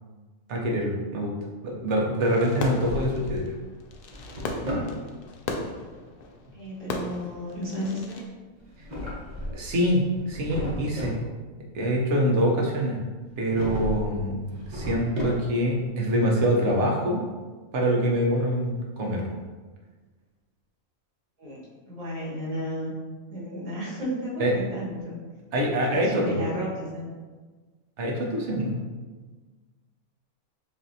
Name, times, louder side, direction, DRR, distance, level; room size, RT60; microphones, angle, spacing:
voice 1, 0.5-1.3 1.6-3.5 9.5-11.2 11.7-13.0 13.4-17.2 17.7-19.2 24.4-24.5 25.5-26.4 28.0-28.8, equal, 60° right, -1 dB, 1.1 m, -25 dB
Fireworks, 2.2-8.3, left 3 dB, 70° left, 0.5 m, -36 dB
Drawer open or close, 2.5-3.5 3.9-5.0 8.6-9.7 10.1-11.2 13.4-14.1 14.4-15.7, left 1 dB, 35° right, 1.1 m, -34 dB
voice 2, 6.5-8.2 21.4-21.6 21.9-22.9 23.3-25.2 26.0-27.1, equal, 85° right, -7 dB, 2.1 m, -33 dB
7.3 x 2.7 x 2.7 m, 1.3 s
omnidirectional pair, 1.5 m